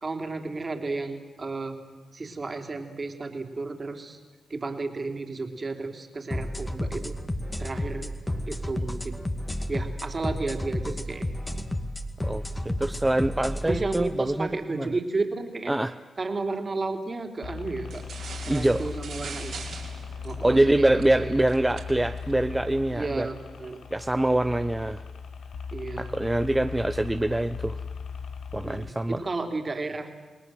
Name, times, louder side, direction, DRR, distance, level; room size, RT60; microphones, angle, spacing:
voice 1, 0.0-1.8 2.1-4.2 4.5-7.2 7.6-8.1 8.5-9.2 9.7-11.3 13.6-15.8 16.2-18.0 18.5-19.5 20.2-21.3 22.9-23.8 25.7-26.1 28.6-30.1, right 3 dB, 40° right, 5 dB, 3.5 m, -32 dB
sound 1, 6.3-14.1, left 1 dB, 20° left, 2.2 m, -31 dB
voice 2, 12.2-14.9 15.7-15.9 18.5-18.9 20.4-23.3 23.9-25.0 26.0-27.8 28.5-29.2, right 1 dB, 15° right, 9 dB, 0.8 m, -25 dB
sound 2, 17.4-28.9, left 6 dB, 75° left, 1.3 m, -38 dB
sound 3, 17.9-23.1, right 5 dB, 75° right, 4.5 m, -43 dB
29.0 x 19.5 x 7.9 m, 1.2 s
cardioid pair, 55°, 0 cm